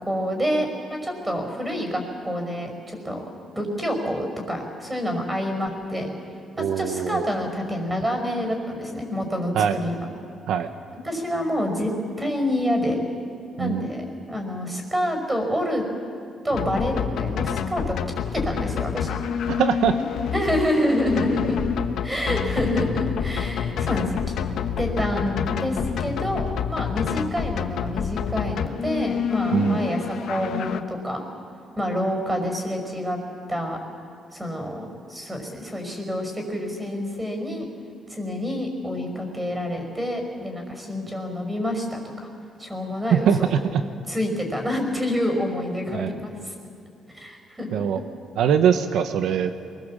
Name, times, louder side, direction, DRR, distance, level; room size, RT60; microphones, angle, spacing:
voice 1, 0.0-3.2 3.5-6.1 6.6-9.9 11.0-11.9 12.2-13.0 13.6-15.8 16.4-19.2 20.3-21.6 22.0-24.4 24.8-31.2 31.8-33.2 33.5-33.8 34.3-37.7 38.1-42.3 42.6-43.6 44.1-46.5 47.1-48.0, equal, 15° right, 4 dB, 5.6 m, -27 dB
voice 2, 6.6-7.3 9.5-9.8 10.5-10.7 13.6-13.9 19.6-19.9 29.5-29.8 43.1-43.8 45.9-46.1 47.7-48.0 48.4-49.5, right 8 dB, 80° right, 8 dB, 1.0 m, -22 dB
sound 1, 16.5-30.8, left 8 dB, 75° left, 1.2 m, -28 dB
23.0 x 21.5 x 7.6 m, 2.4 s
cardioid pair, 90°, 0 cm